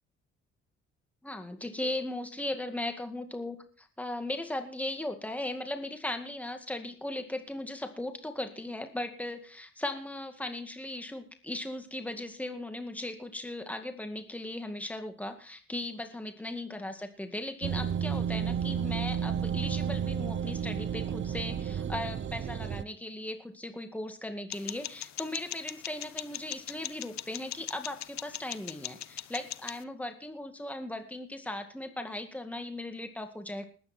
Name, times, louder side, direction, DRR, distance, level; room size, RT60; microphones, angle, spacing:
voice 1, 1.2-33.6, left 1 dB, 5° left, 7 dB, 2.0 m, -37 dB
sound 1, 17.6-22.8, right 8 dB, 40° right, 0.7 m, -32 dB
sound 2, 24.5-29.8, left 13 dB, 70° left, 0.8 m, -41 dB
20.0 x 8.8 x 4.5 m, 0.42 s
supercardioid pair, 65°, 29 cm